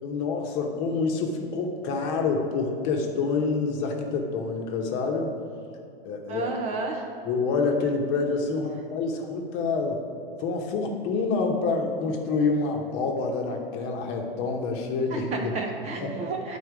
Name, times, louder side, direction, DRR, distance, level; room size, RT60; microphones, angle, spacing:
voice 1, 0.0-5.3 6.0-6.5 7.3-10.0 10.4-15.3, left 4 dB, 40° left, 2 dB, 1.0 m, -27 dB
voice 2, 6.3-7.0 15.1-16.6, right 3 dB, 25° right, 2 dB, 0.5 m, -31 dB
10.0 x 4.3 x 4.8 m, 2.5 s
supercardioid pair, 145°, 29 cm